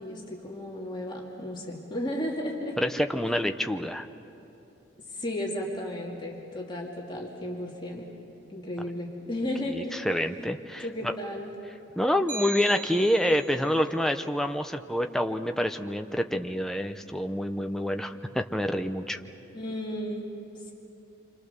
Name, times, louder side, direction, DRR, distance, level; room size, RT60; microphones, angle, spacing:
voice 1, 0.0-2.8 5.1-8.1 8.5-10.0 10.8-11.5 19.5-20.3, left 1 dB, 25° left, -2 dB, 2.4 m, -34 dB
voice 2, 2.8-4.1 9.7-11.1 12.0-19.2, equal, ahead, 6 dB, 0.7 m, -27 dB
sound 1, 12.3-13.7, right 3 dB, 40° right, 2.1 m, -38 dB
28.0 x 25.5 x 6.8 m, 2.9 s
head